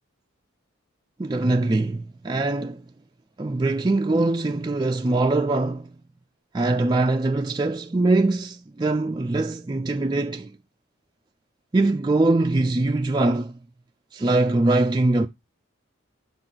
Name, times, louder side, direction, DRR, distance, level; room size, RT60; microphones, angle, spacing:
voice 1, 1.2-2.8 3.4-5.9 6.5-10.5 11.7-13.5 14.1-15.3, right 2 dB, 20° right, 0.3 m, -22 dB
7.2 x 3.8 x 5.9 m
head